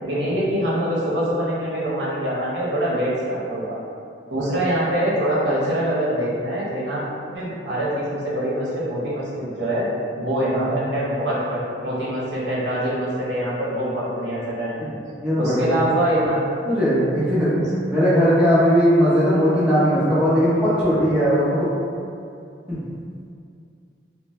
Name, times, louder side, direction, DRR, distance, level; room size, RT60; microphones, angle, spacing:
voice 1, 0.0-3.8 4.3-7.0 7.3-9.9 10.2-11.6 11.8-15.0 15.4-16.4, right 1 dB, 75° right, -8 dB, 0.8 m, -24 dB
voice 2, 15.2-15.6 16.7-17.5 17.9-21.7 22.7-22.8, equal, 5° right, -12 dB, 0.7 m, -18 dB
2.6 x 2.1 x 3.0 m, 2.4 s
head